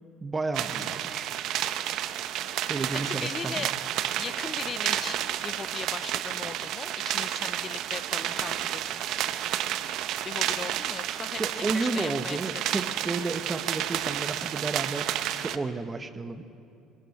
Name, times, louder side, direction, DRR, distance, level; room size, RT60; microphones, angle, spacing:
voice 1, 0.2-1.4 2.7-3.7 11.4-16.4, right 3 dB, 20° right, 8 dB, 0.9 m, -32 dB
sound 1, 0.5-15.6, right 11 dB, 65° right, 0.8 m, -31 dB
voice 2, 0.7-1.1 2.7-3.7 4.2-9.0 10.2-12.8, left 6 dB, 30° left, 18 dB, 0.5 m, -39 dB
21.5 x 15.5 x 9.7 m, 2.6 s
cardioid pair, 130°, 0 cm